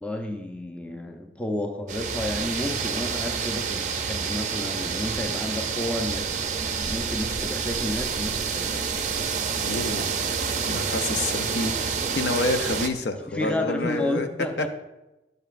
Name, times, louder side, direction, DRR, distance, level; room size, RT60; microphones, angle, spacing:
voice 1, 0.0-9.2 13.3-14.7, left 1 dB, 5° left, 4 dB, 0.6 m, -31 dB
sound 1, 1.9-12.9, right 6 dB, 45° right, 0.5 m, -28 dB
voice 2, 9.6-10.1 10.7-14.3, left 2 dB, 75° left, 7 dB, 0.6 m, -28 dB
11.0 x 6.6 x 2.5 m, 1.0 s
head